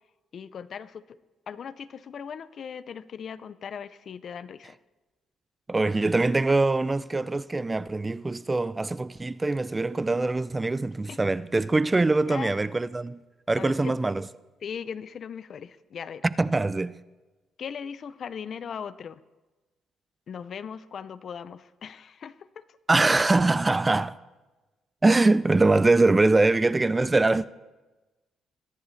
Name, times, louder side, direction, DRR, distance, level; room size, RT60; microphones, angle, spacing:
voice 1, 0.3-1.2 1.5-4.8 11.1-11.2 12.3-12.6 13.5-14.0 14.6-16.2 17.6-19.2 20.3-22.6, left 7 dB, 55° left, 0.5 m, -38 dB
voice 2, 5.7-13.2 13.5-14.2 16.4-17.0 22.9-24.2 25.0-27.5, right 2 dB, 20° right, 0.3 m, -23 dB
22.5 x 10.5 x 3.3 m
cardioid pair, 90°, 0 cm